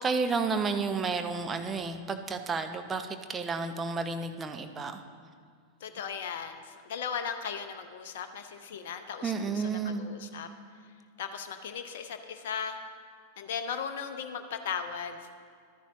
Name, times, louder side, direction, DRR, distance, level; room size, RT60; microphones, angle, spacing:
voice 1, 0.0-5.0 9.2-10.1, right 4 dB, 20° right, 7 dB, 0.6 m, -31 dB
voice 2, 5.8-10.5 11.2-12.8 13.4-15.3, left 7 dB, 55° left, 8 dB, 0.5 m, -37 dB
12.0 x 10.0 x 2.9 m, 2.1 s
figure-of-eight pair, 90°, 0 cm